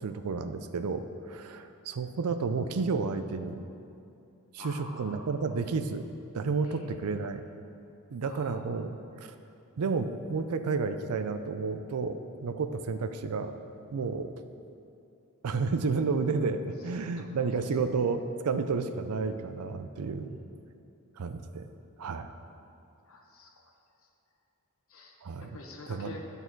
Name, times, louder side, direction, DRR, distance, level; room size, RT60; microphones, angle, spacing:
voice 1, 0.0-3.7 4.5-6.0 6.3-7.4 8.1-9.0 9.2-9.3 9.8-13.5 13.9-14.3 15.4-20.4 21.2-21.6 22.0-22.3 25.2-25.5 25.9-26.1, right 4 dB, 85° right, 9 dB, 0.5 m, -31 dB
voice 2, 4.6-5.4 6.6-6.9 8.2-8.6 17.2-17.5 20.2-20.5 23.1-23.7 24.9-26.2, left 2 dB, 65° left, 1 dB, 1.0 m, -48 dB
11.0 x 6.7 x 4.6 m, 2.6 s
head